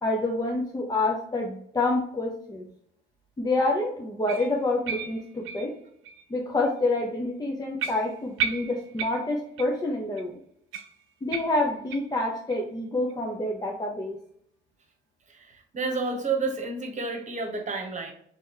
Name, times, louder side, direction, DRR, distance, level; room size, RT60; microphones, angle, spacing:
voice 1, 0.0-2.7 3.4-5.7 6.3-10.4 11.2-14.2, left 2 dB, 20° left, 0 dB, 0.7 m, -27 dB
sound 1, 4.3-6.2 6.6-6.8 7.2-7.3 7.8-9.8 10.2-10.3 10.7-12.2 12.5-12.6 13.1-13.2 13.7-13.8, right 7 dB, 80° right, 0.6 m, -35 dB
voice 2, 15.7-18.1, right 4 dB, 35° right, 3 dB, 1.2 m, -29 dB
3.4 x 3.0 x 4.5 m, 0.67 s
cardioid pair, 90°, 20 cm